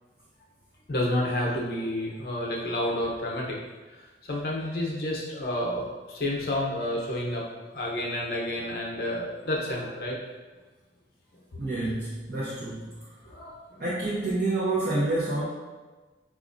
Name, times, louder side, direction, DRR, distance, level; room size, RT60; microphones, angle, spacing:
voice 1, 0.9-3.6 4.2-7.4 7.7-10.2 12.3-12.4 13.3-13.8, left 1 dB, 60° left, -3 dB, 0.7 m, -30 dB
voice 2, 11.6-12.9 13.8-15.4, right 2 dB, 55° right, -8 dB, 0.6 m, -28 dB
4.7 x 2.4 x 2.5 m, 1.2 s
head